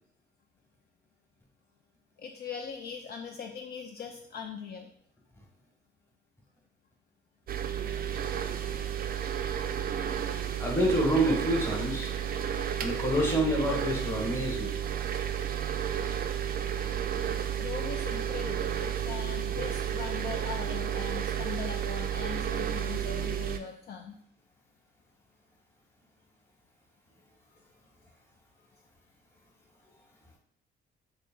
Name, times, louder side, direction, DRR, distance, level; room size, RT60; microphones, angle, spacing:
voice 1, 2.2-4.9 17.6-24.1, left 6 dB, 55° left, 2 dB, 0.4 m, -40 dB
sound 1, 7.5-23.6, right 9 dB, 50° right, 0.4 m, -32 dB
voice 2, 10.6-12.1 12.8-14.7 16.5-16.7, equal, 10° left, -1 dB, 1.1 m, -28 dB
3.1 x 2.6 x 3.7 m, 0.67 s
cardioid pair, 90°, 20 cm